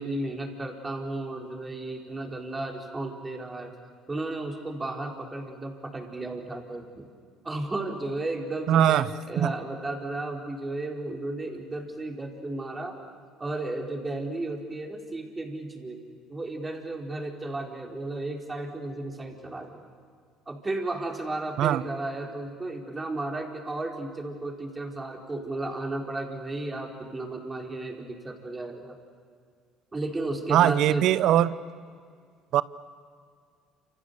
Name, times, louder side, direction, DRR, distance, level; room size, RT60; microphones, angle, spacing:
voice 1, 0.0-3.7 4.1-7.1 7.4-12.9 13.4-16.0 16.3-19.8 20.5-28.9 29.9-31.0, right 2 dB, 20° right, 2 dB, 4.8 m, -34 dB
voice 2, 8.7-9.1 9.4-9.5 21.6-21.8 30.5-31.6 32.5-32.6, right 11 dB, 65° right, 18 dB, 0.8 m, -21 dB
29.5 x 27.5 x 7.0 m, 2.1 s
supercardioid pair, 75°, 0 cm